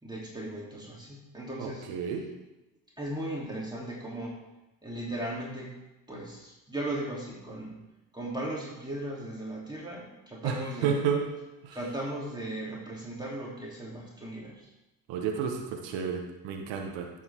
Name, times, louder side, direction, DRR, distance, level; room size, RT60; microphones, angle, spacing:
voice 1, 0.0-1.9 3.0-4.4 4.8-5.8 6.1-7.8 8.1-11.0 11.7-14.7, right 1 dB, 10° right, -5 dB, 3.1 m, -37 dB
voice 2, 1.6-2.2 10.4-11.2 11.6-11.8 15.1-17.1, right 6 dB, 75° right, 3 dB, 1.4 m, -31 dB
10.0 x 7.4 x 3.6 m, 0.99 s
supercardioid pair, 60°, 45 cm